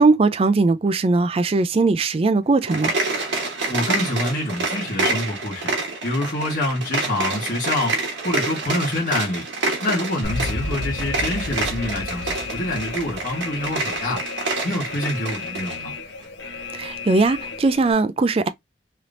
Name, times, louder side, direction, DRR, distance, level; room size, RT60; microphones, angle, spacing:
voice 1, 0.0-2.9 16.7-18.5, right 3 dB, 30° right, 0.3 m, -19 dB
sound 1, 2.6-15.8, right 3 dB, 75° right, 1.3 m, -27 dB
voice 2, 3.7-5.7 6.0-9.4 9.8-14.2 14.6-15.9, left 1 dB, 45° left, 1.2 m, -26 dB
Alarm, 10.2-17.9, left 3 dB, 70° left, 0.8 m, -32 dB
3.3 x 2.9 x 2.5 m
head